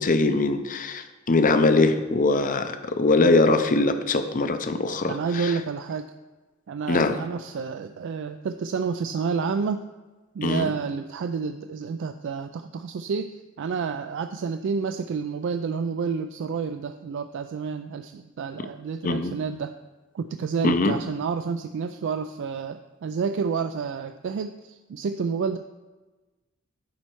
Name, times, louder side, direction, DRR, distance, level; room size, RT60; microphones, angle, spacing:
voice 1, 0.0-5.6 6.9-7.2 10.4-10.7 19.0-19.4 20.6-21.0, left 3 dB, 40° left, 9 dB, 0.6 m, -22 dB
voice 2, 5.1-6.1 6.7-9.8 10.3-19.7 20.1-25.6, right 5 dB, 60° right, 8 dB, 0.3 m, -29 dB
11.5 x 4.3 x 4.5 m, 1.2 s
head